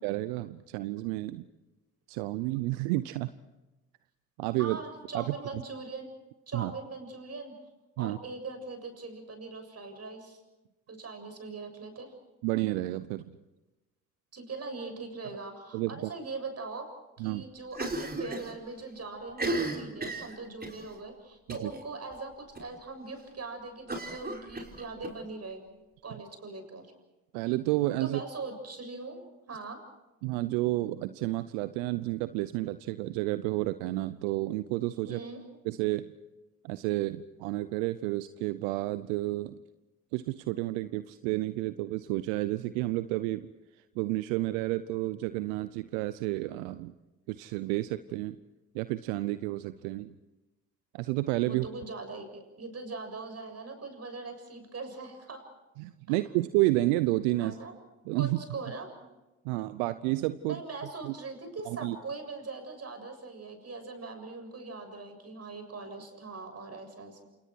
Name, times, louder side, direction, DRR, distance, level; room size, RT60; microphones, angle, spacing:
voice 1, 0.0-1.4 2.1-3.3 4.4-4.8 5.1-5.6 6.5-6.7 8.0-8.2 12.4-13.4 15.7-16.1 17.2-17.4 21.5-21.7 27.3-28.2 30.2-35.2 35.6-36.1 36.6-39.6 40.1-43.5 44.0-46.9 47.3-48.4 48.7-50.1 50.9-51.7 55.8-57.6 58.1-58.4 59.4-60.6 61.0-61.1 61.7-62.0, right 18 dB, 80° right, 14 dB, 0.8 m, -30 dB
voice 2, 4.6-6.1 6.5-7.5 8.0-10.4 10.9-12.1 14.3-16.8 17.2-25.6 26.0-26.9 28.0-29.2 29.5-29.8 35.1-35.4 51.5-55.4 56.1-56.2 57.4-57.7 58.1-58.9 60.5-67.2, right 3 dB, 40° right, 6 dB, 7.2 m, -41 dB
Cough, 17.7-18.5 18.8-18.9 19.3-20.8 21.5-21.8 22.1-22.2 22.5-22.6 23.9-25.1, right 2 dB, 25° right, 5.4 m, -34 dB
28.5 x 28.0 x 4.7 m, 1.1 s
hypercardioid pair, 50°, 38 cm